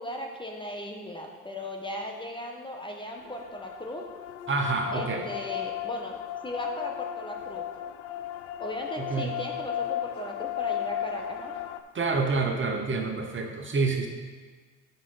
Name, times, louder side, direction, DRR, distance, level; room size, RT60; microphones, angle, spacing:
voice 1, 0.0-4.0 4.9-6.1 6.4-7.6 8.6-11.5, equal, 10° left, 1 dB, 1.1 m, -37 dB
sound 1, 3.2-11.8, left 11 dB, 85° left, 0.5 m, -35 dB
voice 2, 4.5-5.2 9.0-9.3 11.9-14.1, right 4 dB, 30° right, 3 dB, 1.0 m, -27 dB
8.4 x 6.1 x 4.0 m, 1.4 s
hypercardioid pair, 75°, 41 cm